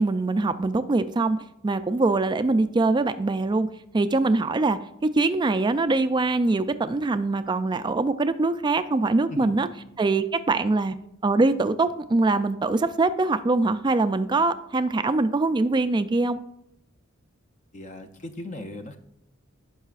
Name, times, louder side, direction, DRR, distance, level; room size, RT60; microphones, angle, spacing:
voice 1, 0.0-1.4 1.6-3.7 3.9-9.7 10.0-10.9 11.2-16.4, right 3 dB, 20° right, 11 dB, 0.3 m, -23 dB
voice 2, 17.7-19.0, left 2 dB, 35° left, 7 dB, 0.6 m, -37 dB
16.5 x 5.5 x 2.4 m, 0.81 s
head